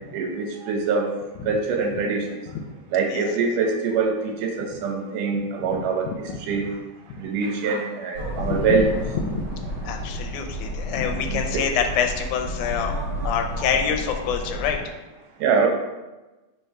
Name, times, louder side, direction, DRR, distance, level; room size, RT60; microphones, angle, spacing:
voice 1, 0.1-1.1 1.5-2.4 2.9-6.1 6.5-6.7 7.2-8.9 11.0-11.6 15.4-15.7, right 5 dB, 80° right, 2 dB, 2.4 m, -24 dB
voice 2, 5.7-6.2 8.4-8.8 9.1-12.9 13.2-14.9, left 7 dB, 75° left, 3 dB, 2.0 m, -27 dB
sound 1, 8.1-14.8, equal, 45° right, 2.1 m, -31 dB
5.4 x 4.2 x 4.6 m, 1.1 s
omnidirectional pair, 3.7 m